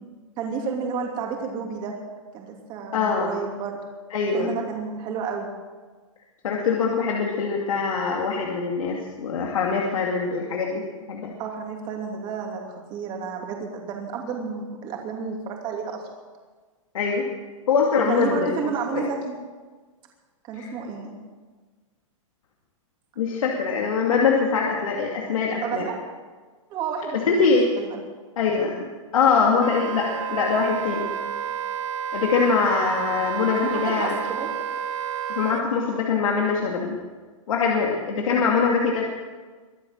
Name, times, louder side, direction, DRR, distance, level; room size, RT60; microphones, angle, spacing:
voice 1, 0.4-2.0 2.3-3.8 4.3-5.5 11.4-16.0 18.1-19.3 20.4-21.2 25.6-26.0 26.7-27.5 27.8-28.1 29.5-29.8 33.6-34.6 38.1-38.5, right 5 dB, 25° right, 1 dB, 2.9 m, -31 dB
voice 2, 2.9-3.3 4.1-4.5 6.4-11.3 16.9-17.3 17.7-19.0 20.6-20.7 23.2-25.9 27.2-27.7 28.4-28.9 29.1-31.1 32.1-34.2 35.3-37.0 37.5-39.0, left 5 dB, 80° left, -1 dB, 2.5 m, -23 dB
Wind instrument woodwind instrument, 29.6-35.6, right 8 dB, 65° right, 1.2 m, -30 dB
23.5 x 8.8 x 6.5 m, 1.4 s
hypercardioid pair, 160°, 17 cm